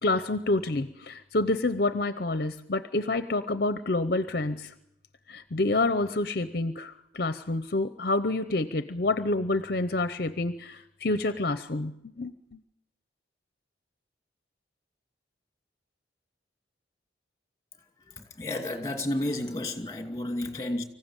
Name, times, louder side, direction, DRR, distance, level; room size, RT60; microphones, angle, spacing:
voice 1, 0.0-4.7 5.3-12.6, left 2 dB, 50° left, 0.8 m, -28 dB
voice 2, 18.1-20.8, left 1 dB, 20° left, 2.6 m, -32 dB
24.5 x 16.0 x 9.0 m
head